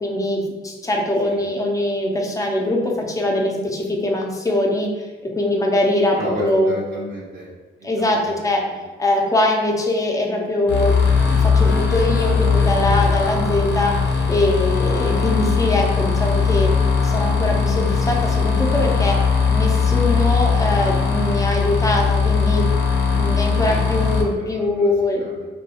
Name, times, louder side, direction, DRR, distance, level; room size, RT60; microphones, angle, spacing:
voice 1, 0.0-4.9 5.4-6.7 7.8-8.6 9.0-10.9 11.3-14.0 14.3-16.7 17.0-19.2 19.5-22.6 23.1-25.2, left 1 dB, 15° left, 0 dB, 0.5 m, -22 dB
voice 2, 6.2-7.5 7.8-8.3 23.6-23.8 24.3-24.9 25.2-25.5, equal, 65° right, -6 dB, 0.6 m, -31 dB
sound 1, 10.7-24.2, left 5 dB, 60° left, 0.6 m, -19 dB
2.3 x 2.3 x 2.8 m, 1.4 s
cardioid pair, 90°, 20 cm